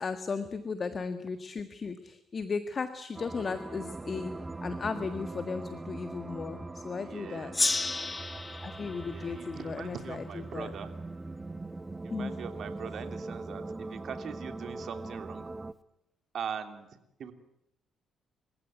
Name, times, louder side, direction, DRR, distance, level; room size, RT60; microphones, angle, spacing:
voice 1, 0.0-4.3 4.6-7.5 8.2-10.7 12.1-12.3, left 5 dB, 40° left, 10 dB, 1.6 m, -36 dB
sound 1, 3.1-15.7, right 2 dB, 20° right, 1.0 m, -41 dB
voice 2, 7.0-7.6 9.0-10.9 12.0-15.4 16.3-16.9 17.2-17.3, right 7 dB, 60° right, 7 dB, 3.1 m, -41 dB
Gong, 7.5-10.7, left 3 dB, 25° left, 1.4 m, -33 dB
29.0 x 16.0 x 9.3 m, 0.84 s
cardioid pair, 90°, 0 cm